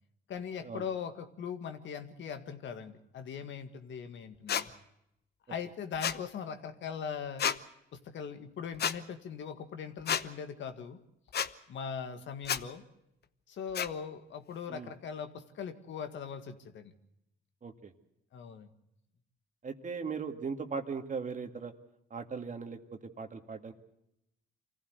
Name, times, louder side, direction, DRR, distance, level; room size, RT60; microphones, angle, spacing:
voice 1, 0.3-4.7 5.5-7.5 7.9-11.0 11.7-12.8 13.5-16.9 18.3-18.7, left 7 dB, 70° left, 8 dB, 1.9 m, -40 dB
sound 1, 4.5-4.6 6.0-6.2 7.4-7.6 8.8-8.9 10.1-10.2 11.3-11.5 12.4-12.6 13.7-13.9, left 8 dB, 55° left, 1.0 m, -30 dB
voice 2, 17.6-17.9 19.6-21.7 22.1-23.7, right 5 dB, 40° right, 6 dB, 2.0 m, -38 dB
25.0 x 15.5 x 8.0 m, 0.82 s
cardioid pair, 90°, 20 cm